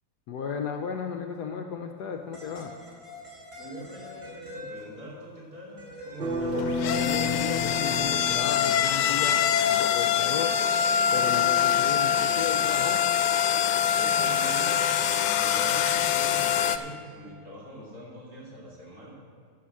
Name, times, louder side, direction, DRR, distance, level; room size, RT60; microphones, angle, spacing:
voice 1, 0.3-2.7 6.9-9.4 9.7-10.6 11.1-13.0, left 7 dB, 70° left, 4 dB, 1.1 m, -34 dB
sound 1, 2.3-5.2 5.8-8.3 9.4-9.8, left 2 dB, 30° right, 3.9 m, -43 dB
voice 2, 3.6-6.7 14.0-19.1, right 1 dB, 50° right, -6 dB, 3.8 m, -43 dB
sound 2, 6.2-9.2, left 2 dB, 70° right, 2.0 m, -31 dB
sound 3, 6.4-16.8, left 9 dB, 90° left, 1.4 m, -24 dB
11.5 x 6.4 x 7.5 m, 2.2 s
omnidirectional pair, 2.1 m